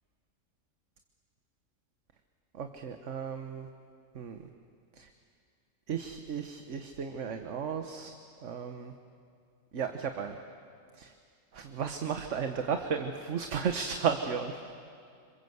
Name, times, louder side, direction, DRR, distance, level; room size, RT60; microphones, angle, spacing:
voice 1, 2.5-3.7 4.1-4.4 5.0-5.1 5.9-8.1 8.4-8.9 9.7-10.4 11.0-11.1 11.5-14.6, right 6 dB, 60° right, 6 dB, 1.4 m, -34 dB
27.0 x 26.0 x 8.0 m, 2.3 s
omnidirectional pair, 1.5 m